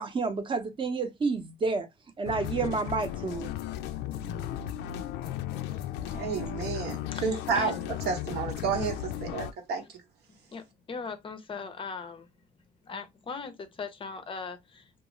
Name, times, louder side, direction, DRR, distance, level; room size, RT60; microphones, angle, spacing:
voice 1, 0.0-1.9 2.2-3.5, right 4 dB, 30° right, 0.7 m, -30 dB
sound 1, 2.3-9.5, left 11 dB, 85° left, 0.4 m, -35 dB
voice 2, 6.1-7.7 8.1-9.8, right 5 dB, 75° right, 0.9 m, -31 dB
voice 3, 7.1-7.7 10.5-12.3 12.8-15.0, left 5 dB, 30° left, 0.5 m, -39 dB
2.4 x 2.3 x 3.0 m
cardioid pair, 110°, 17 cm